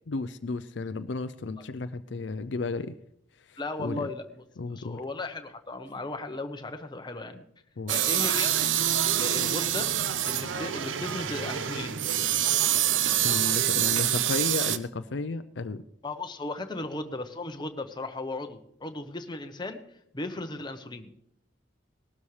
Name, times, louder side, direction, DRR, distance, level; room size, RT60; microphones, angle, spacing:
voice 1, 0.1-3.0 3.4-4.1 4.6-5.0 7.8-7.9 13.2-15.8, left 3 dB, 65° left, 12 dB, 0.5 m, -33 dB
voice 2, 3.6-4.4 4.8-7.4 7.9-8.6 9.1-9.9 10.2-12.0 16.0-19.8 20.1-21.1, left 2 dB, 25° left, 6 dB, 0.9 m, -36 dB
sound 1, 7.9-14.8, right 11 dB, 85° right, 0.7 m, -26 dB
19.5 x 12.5 x 3.3 m, 0.72 s
head